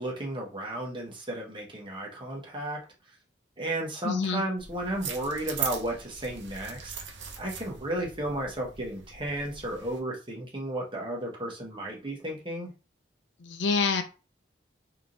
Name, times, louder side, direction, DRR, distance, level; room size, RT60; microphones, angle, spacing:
voice 1, 0.0-2.8 3.6-6.9 7.4-12.7, right 1 dB, 25° right, 1.1 m, -33 dB
voice 2, 4.0-4.4 13.4-14.0, left 4 dB, 70° left, 0.5 m, -27 dB
sound 1, 4.6-10.0, right 7 dB, 70° right, 0.8 m, -40 dB
3.5 x 2.8 x 3.9 m
head